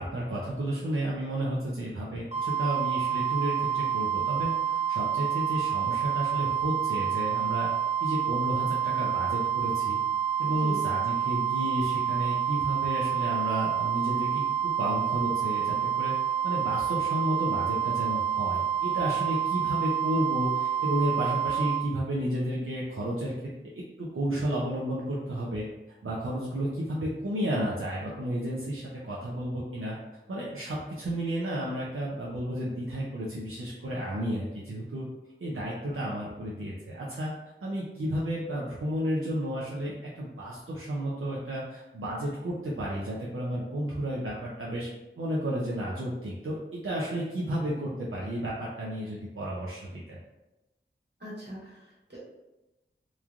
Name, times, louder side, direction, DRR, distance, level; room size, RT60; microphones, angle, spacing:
voice 1, 0.0-7.7 8.0-10.0 10.4-14.4 14.8-16.1 16.4-23.3 23.7-25.6 26.0-30.0 30.3-35.0 35.4-37.3 37.6-44.9 45.2-50.2, equal, 85° right, -5 dB, 0.5 m, -32 dB
sound 1, 2.3-21.8, right 9 dB, 35° right, 0.7 m, -28 dB
voice 2, 51.2-52.2, equal, 55° right, -7 dB, 1.3 m, -41 dB
3.0 x 2.4 x 2.4 m, 1.0 s
wide cardioid pair, 45°, 21 cm